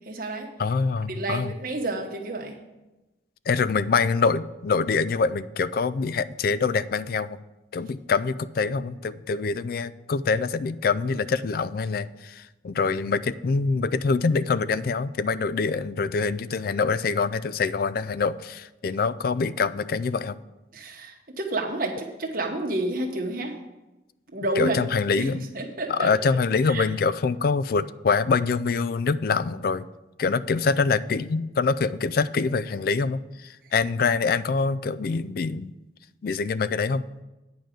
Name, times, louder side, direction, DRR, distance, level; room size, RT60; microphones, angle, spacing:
voice 1, 0.0-0.5 1.1-2.6 20.7-23.5 24.3-24.8 25.2-25.3 25.5-26.1 26.7-26.9, right 2 dB, 50° right, 2 dB, 1.3 m, -29 dB
voice 2, 0.6-1.5 3.5-7.4 7.7-20.4 24.6-25.5 25.9-29.9 30.2-35.7 36.2-37.0, left 4 dB, 50° left, 16 dB, 0.3 m, -25 dB
9.1 x 5.1 x 7.7 m, 1.0 s
head